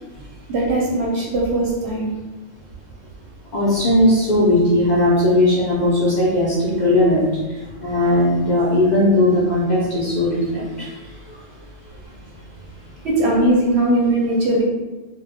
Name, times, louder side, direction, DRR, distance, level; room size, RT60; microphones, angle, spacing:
voice 1, 0.5-2.1 13.0-14.6, right 1 dB, 65° right, -3 dB, 0.7 m, -19 dB
voice 2, 3.5-7.3 7.8-10.9 11.3-11.4, left 1 dB, 75° left, -8 dB, 0.4 m, -17 dB
2.2 x 2.0 x 2.7 m, 1.2 s
omnidirectional pair, 1.4 m